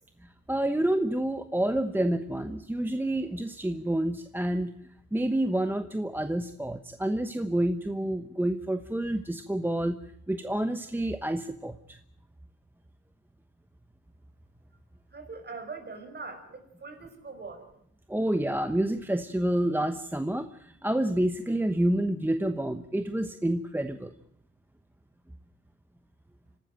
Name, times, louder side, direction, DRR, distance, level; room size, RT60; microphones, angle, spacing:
voice 1, 0.2-4.7 5.1-10.0 10.3-12.0 18.1-24.1, right 1 dB, 5° right, 9 dB, 1.1 m, -28 dB
voice 2, 15.1-17.7, right 4 dB, 35° right, 6 dB, 5.5 m, -42 dB
26.5 x 13.0 x 9.0 m, 0.73 s
cardioid pair, 90°, 30 cm